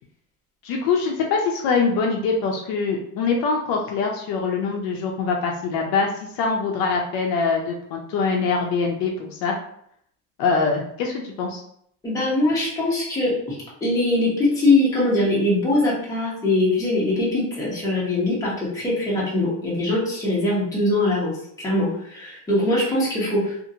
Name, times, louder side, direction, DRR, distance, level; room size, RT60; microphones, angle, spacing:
voice 1, 0.6-6.1 6.3-9.6 10.4-11.6, left 4 dB, 65° left, 1 dB, 0.5 m, -23 dB
voice 2, 12.0-21.3 21.6-23.6, left 2 dB, 10° left, -8 dB, 0.9 m, -22 dB
2.7 x 2.5 x 2.7 m, 0.68 s
cardioid pair, 170°, 39 cm